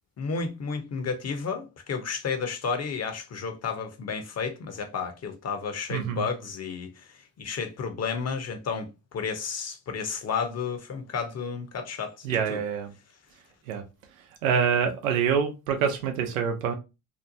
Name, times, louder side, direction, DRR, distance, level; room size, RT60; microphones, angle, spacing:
voice 1, 0.2-7.1 7.4-12.6, left 5 dB, 40° left, 0.8 m, -32 dB
voice 2, 5.9-6.3 12.2-12.9 13.7-13.8 14.2-16.7, right 7 dB, 90° right, 0.6 m, -26 dB
2.8 x 2.1 x 2.6 m
hypercardioid pair, 50°, 39 cm